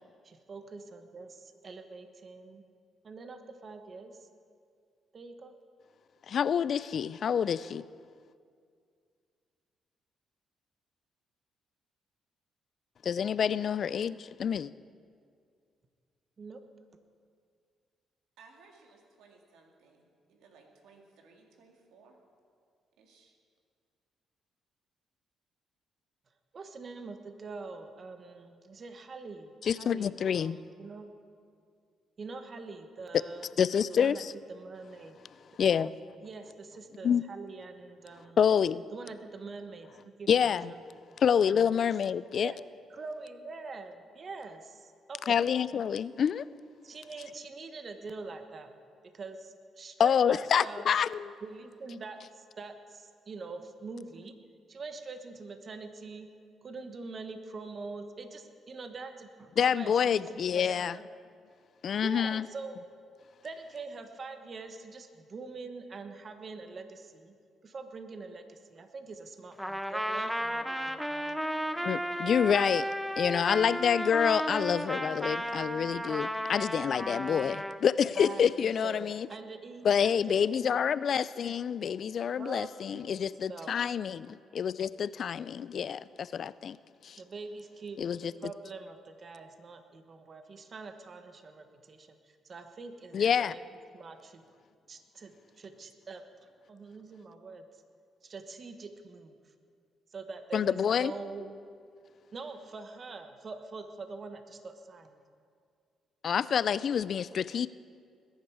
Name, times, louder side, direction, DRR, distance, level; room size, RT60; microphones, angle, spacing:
voice 1, 0.2-2.6 3.0-4.3 5.1-5.5 16.4-16.6 26.5-31.1 32.2-33.5 33.9-34.2 34.5-35.2 36.2-38.4 38.9-39.9 40.2-40.8 41.1-41.7 42.4-42.6 42.9-45.5 46.8-48.7 49.1-50.9 51.4-54.4 54.7-56.3 56.6-61.0 62.0-62.8 63.4-67.4 67.6-71.4 78.1-79.9 80.3-80.4 82.4-83.2 83.5-83.7 87.2-93.7 93.9-94.5 94.9-97.8 98.2-99.5 100.1-101.6 102.3-105.2, right 4 dB, 45° right, 7 dB, 1.2 m, -44 dB
voice 2, 6.3-7.8 13.0-14.7 29.6-30.6 33.6-34.3 35.6-35.9 37.0-37.2 38.4-38.8 40.3-40.7 41.2-42.5 45.3-46.5 50.0-51.3 59.6-60.9 61.8-62.5 71.8-72.9 73.2-79.3 79.8-86.8 87.0-87.2 88.0-88.3 93.1-93.5 100.5-101.1 106.2-107.7, left 7 dB, 55° left, 18 dB, 0.3 m, -27 dB
voice 3, 18.4-20.0 20.3-22.2 23.0-23.3, right 4 dB, 90° right, 2 dB, 2.1 m, -59 dB
Trumpet, 69.6-77.8, equal, ahead, 0.6 m, -34 dB
21.0 x 10.0 x 4.8 m, 2.2 s
cardioid pair, 90°, 0 cm